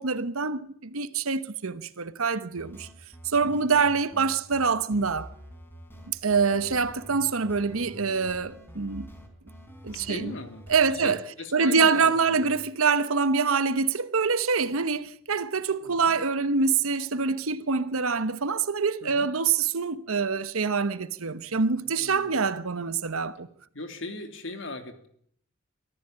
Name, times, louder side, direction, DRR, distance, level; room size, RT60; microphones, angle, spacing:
voice 1, 0.0-2.9 3.2-5.3 6.1-9.1 9.8-10.3 10.7-11.2 11.5-23.5, right 5 dB, 85° right, 1.1 m, -25 dB
sound 1, 2.6-11.2, equal, 10° left, 4.2 m, -46 dB
voice 2, 3.4-3.7 9.9-10.6 11.0-12.5 15.8-16.1 19.0-19.3 21.8-22.5 23.7-25.1, left 2 dB, 65° left, 3.0 m, -39 dB
24.0 x 14.5 x 8.9 m
head